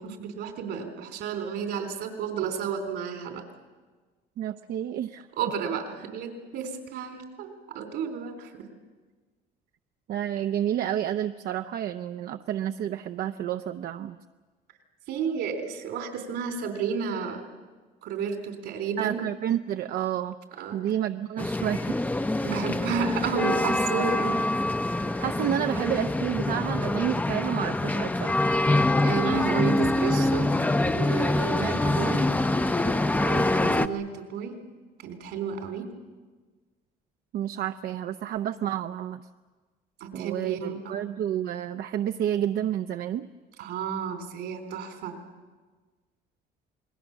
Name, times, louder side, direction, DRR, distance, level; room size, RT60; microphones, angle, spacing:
voice 1, 0.0-3.4 5.4-8.7 15.1-17.4 18.0-19.3 20.6-20.8 22.4-24.4 29.0-30.5 30.9-32.3 33.2-34.5 35.0-35.8 40.0-41.1 43.6-45.2, right 6 dB, 80° right, 6 dB, 3.9 m, -32 dB
voice 2, 4.4-5.3 10.1-14.2 19.0-20.4 20.7-22.0 25.2-28.4 37.3-39.2 40.1-43.3, right 10 dB, 65° right, 8 dB, 0.7 m, -30 dB
sound 1, 21.4-33.9, left 2 dB, 10° left, 0.7 m, -25 dB
28.0 x 20.5 x 7.3 m, 1.4 s
cardioid pair, 110°, 17 cm